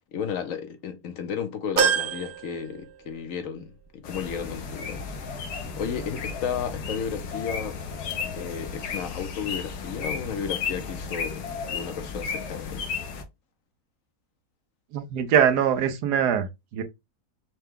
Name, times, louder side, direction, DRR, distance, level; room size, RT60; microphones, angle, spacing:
voice 1, 0.1-5.1 5.8-7.8 8.4-12.8, left 7 dB, 65° left, 1.0 m, -33 dB
sound 1, 1.8-3.4 3.8-3.9 5.1-5.2, right 6 dB, 60° right, 0.5 m, -27 dB
sound 2, 4.0-13.2, left 5 dB, 85° left, 1.4 m, -34 dB
voice 2, 14.9-16.8, right 8 dB, 85° right, 1.3 m, -23 dB
5.6 x 2.2 x 3.6 m
omnidirectional pair, 1.7 m